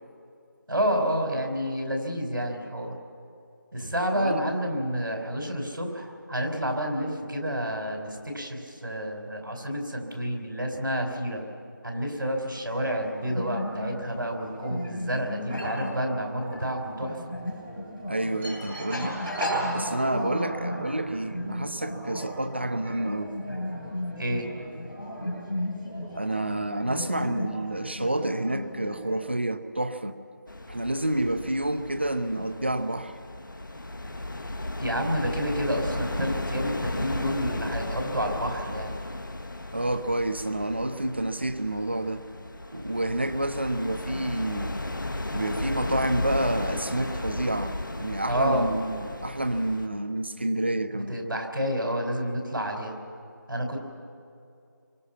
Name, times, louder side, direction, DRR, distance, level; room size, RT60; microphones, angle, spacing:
voice 1, 0.7-3.0 3.7-11.4 11.8-17.2 24.2-24.5 34.8-39.0 48.2-48.7 50.9-53.0 53.5-53.9, equal, 85° right, 2 dB, 5.1 m, -29 dB
voice 2, 4.1-4.4 18.1-19.2 19.7-23.4 26.1-30.2 30.7-33.1 39.7-42.2 42.7-44.8 45.3-51.1, right 1 dB, 35° right, 11 dB, 0.8 m, -29 dB
sound 1, 12.6-29.2, equal, ahead, 1.0 m, -35 dB
sound 2, 30.5-49.9, left 1 dB, 75° left, 1.7 m, -35 dB
27.5 x 24.0 x 5.9 m, 2.6 s
figure-of-eight pair, 180°, 11 cm